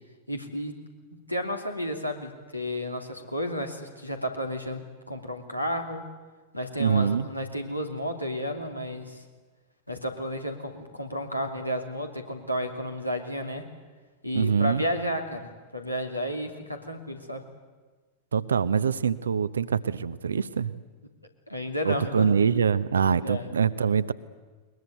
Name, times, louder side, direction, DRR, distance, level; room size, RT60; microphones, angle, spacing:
voice 1, 0.3-0.8 1.3-6.1 6.5-9.2 9.9-13.7 14.2-17.4 21.5-22.3 23.2-23.5, equal, 90° left, 3 dB, 2.8 m, -32 dB
voice 2, 6.8-7.3 14.3-14.8 18.3-20.8 21.8-24.1, right 6 dB, 70° right, 15 dB, 0.9 m, -24 dB
21.5 x 21.5 x 9.2 m, 1.4 s
figure-of-eight pair, 90°, 0 cm